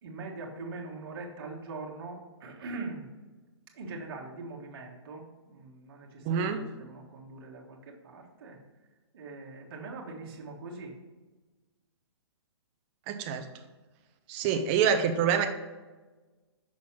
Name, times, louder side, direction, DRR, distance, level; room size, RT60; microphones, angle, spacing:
voice 1, 0.0-3.1 3.7-8.6 9.1-10.9, right 3 dB, 50° right, -1 dB, 1.6 m, -42 dB
voice 2, 6.2-6.6 13.1-13.4 14.3-15.5, right 7 dB, 25° right, 7 dB, 0.6 m, -26 dB
6.2 x 4.0 x 5.7 m, 1.3 s
hypercardioid pair, 150°, 15 cm